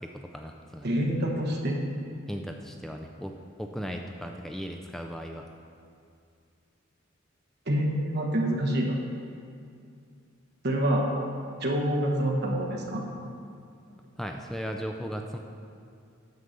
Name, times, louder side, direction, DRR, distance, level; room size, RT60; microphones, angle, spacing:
voice 1, 0.0-0.9 2.3-3.3 3.6-5.4 13.9-15.4, equal, ahead, 3 dB, 0.3 m, -37 dB
voice 2, 0.8-1.8 7.7-9.0 10.6-11.1 11.6-13.0, right 1 dB, 55° right, 0 dB, 1.2 m, -26 dB
9.5 x 5.4 x 6.7 m, 2.4 s
head